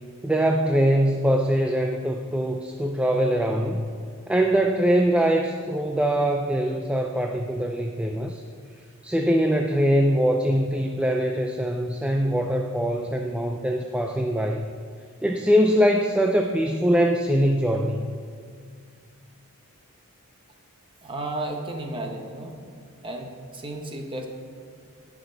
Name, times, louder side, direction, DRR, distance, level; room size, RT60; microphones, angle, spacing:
voice 1, 0.2-3.9 4.3-8.4 9.0-14.7 15.2-18.1, equal, 5° right, 3 dB, 0.3 m, -22 dB
voice 2, 21.0-22.5 23.0-24.3, right 1 dB, 25° right, 2 dB, 1.1 m, -33 dB
17.5 x 6.1 x 3.9 m, 2.2 s
head